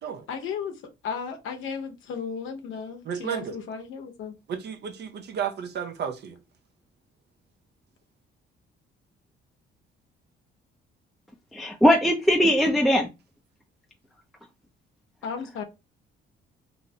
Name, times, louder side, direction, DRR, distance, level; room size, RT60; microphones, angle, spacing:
voice 1, 0.3-0.7 1.0-4.3 15.2-15.6, left 6 dB, 85° left, 0.6 m, -34 dB
voice 2, 3.0-3.6 4.5-6.4, right 8 dB, 60° right, 0.5 m, -32 dB
voice 3, 11.5-13.1, equal, ahead, 0.4 m, -20 dB
2.6 x 2.1 x 2.7 m
cardioid pair, 90°, 20 cm